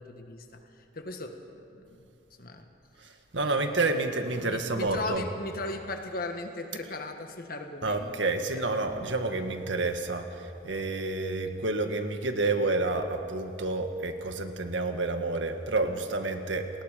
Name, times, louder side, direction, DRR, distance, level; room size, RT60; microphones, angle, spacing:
voice 1, 0.0-1.4 1.7-2.1 2.4-2.7 3.4-3.7 4.4-8.6, left 2 dB, 50° left, 5 dB, 1.5 m, -38 dB
voice 2, 3.0-5.2 7.8-16.8, right 2 dB, 85° right, 6 dB, 1.8 m, -29 dB
29.5 x 19.5 x 5.2 m, 2.7 s
head